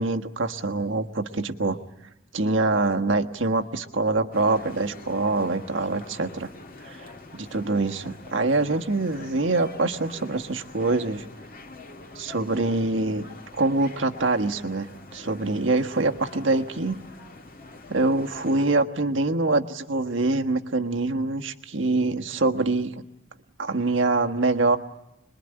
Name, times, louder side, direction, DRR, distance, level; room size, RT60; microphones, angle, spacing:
voice 1, 0.0-1.8 2.3-6.5 6.8-11.2 12.1-13.2 13.6-17.0 17.9-23.0 23.6-24.8, right 2 dB, 80° right, 5 dB, 1.4 m, -25 dB
sound 1, 4.3-18.7, left 3 dB, 50° left, 2.2 m, -45 dB
27.0 x 21.5 x 9.8 m, 0.92 s
head